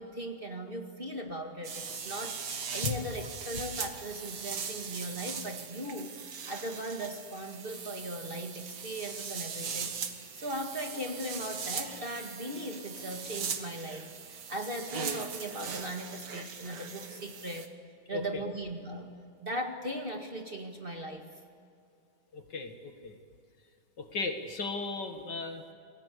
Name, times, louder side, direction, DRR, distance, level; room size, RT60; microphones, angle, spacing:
voice 1, 0.0-2.4 2.7-6.2 6.5-9.9 10.3-17.7 18.1-19.1 19.4-21.3, right 1 dB, 25° right, 3 dB, 2.0 m, -38 dB
sound 1, 1.6-17.7, right 6 dB, 55° right, 2.0 m, -40 dB
voice 2, 18.1-18.5 22.3-23.2 24.0-25.7, left 4 dB, 55° left, 6 dB, 2.2 m, -36 dB
29.0 x 21.0 x 8.3 m, 2.5 s
omnidirectional pair, 2.3 m